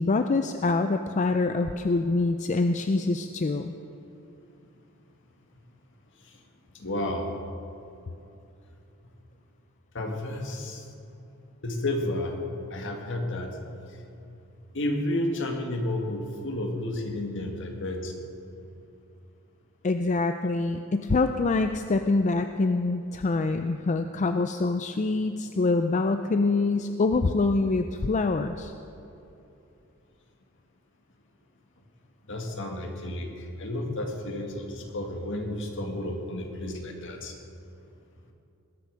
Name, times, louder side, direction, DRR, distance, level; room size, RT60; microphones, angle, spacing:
voice 1, 0.0-3.7 19.8-28.7, left 3 dB, 35° left, 8 dB, 0.4 m, -25 dB
voice 2, 6.8-7.4 9.9-10.8 11.6-12.4 12.7-13.6 14.7-18.1 32.3-37.3, left 1 dB, 60° left, 3 dB, 1.9 m, -31 dB
20.0 x 8.2 x 6.4 m, 2.8 s
head